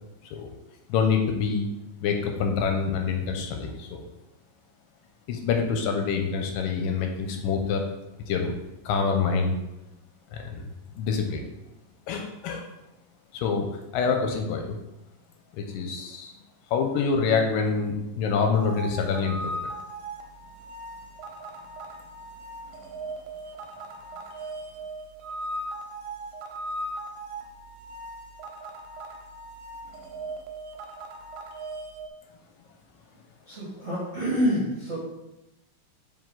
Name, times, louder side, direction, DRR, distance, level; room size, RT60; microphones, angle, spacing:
voice 1, 0.9-1.7 2.0-4.0 5.3-7.8 8.3-8.6 8.9-9.6 10.3-10.6 11.0-11.4 12.1-12.7 13.3-13.7 13.9-14.8 15.5-16.3 16.7-19.5, left 5 dB, 85° left, 4 dB, 2.2 m, -26 dB
sound 1, 18.5-32.1, right 1 dB, 85° right, 2.3 m, -38 dB
voice 2, 33.5-35.0, equal, 35° right, -8 dB, 1.2 m, -27 dB
6.1 x 4.4 x 3.8 m, 0.92 s
omnidirectional pair, 4.1 m